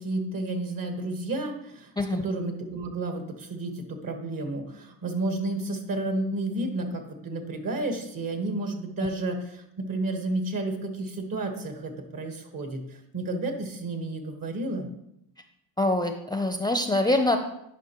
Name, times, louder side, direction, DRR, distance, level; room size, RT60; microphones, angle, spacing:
voice 1, 0.0-1.9 2.2-14.9, right 2 dB, 50° right, 5 dB, 1.6 m, -31 dB
voice 2, 15.8-17.4, left 2 dB, 10° left, 5 dB, 0.6 m, -24 dB
9.9 x 5.4 x 3.1 m, 0.79 s
supercardioid pair, 70°, 42 cm